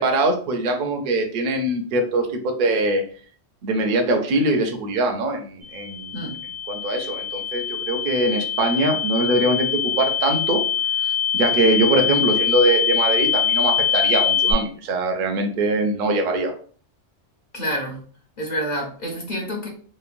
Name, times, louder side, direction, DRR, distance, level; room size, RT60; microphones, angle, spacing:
voice 1, 0.0-3.0 3.6-6.1 6.7-10.6 11.1-16.5, right 2 dB, 55° right, 4 dB, 0.6 m, -22 dB
sound 1, 5.6-14.5, left 9 dB, 80° right, 1.2 m, -23 dB
voice 2, 17.5-18.0 18.4-19.7, equal, 45° left, -1 dB, 0.7 m, -28 dB
3.0 x 2.1 x 2.5 m, 0.43 s
omnidirectional pair, 1.2 m